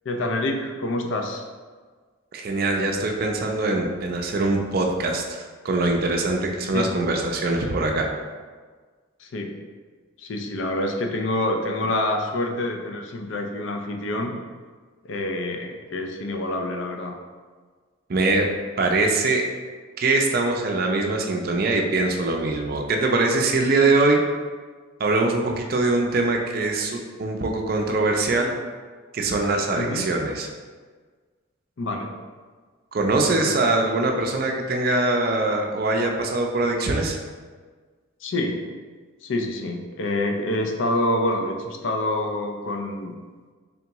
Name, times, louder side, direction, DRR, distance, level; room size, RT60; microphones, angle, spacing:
voice 1, 0.0-1.4 6.7-6.9 9.2-9.6 10.2-14.3 15.0-17.2 29.7-30.1 31.8-32.2 33.3-33.7 38.2-38.6 39.2-43.1, left 1 dB, 65° left, 3 dB, 0.5 m, -27 dB
voice 2, 2.3-8.1 18.1-18.5 18.8-19.4 20.0-24.2 25.0-28.5 29.1-30.5 32.9-37.2, right 2 dB, 45° right, 2 dB, 0.4 m, -22 dB
3.6 x 3.5 x 2.9 m, 1.5 s
head